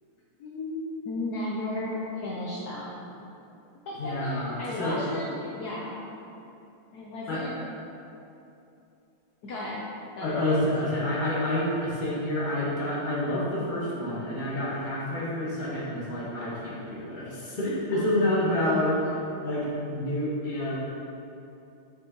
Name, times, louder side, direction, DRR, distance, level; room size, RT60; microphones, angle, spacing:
voice 1, 0.4-3.1 3.9-6.0 6.9-7.5 9.4-9.8 10.2-10.9 17.9-18.9, left 2 dB, 60° left, -5 dB, 1.1 m, -35 dB
voice 2, 4.0-5.0 7.3-7.4 10.2-18.9 19.4-20.8, left 1 dB, 25° left, -8 dB, 1.4 m, -28 dB
7.8 x 5.5 x 3.1 m, 2.8 s
omnidirectional pair, 2.3 m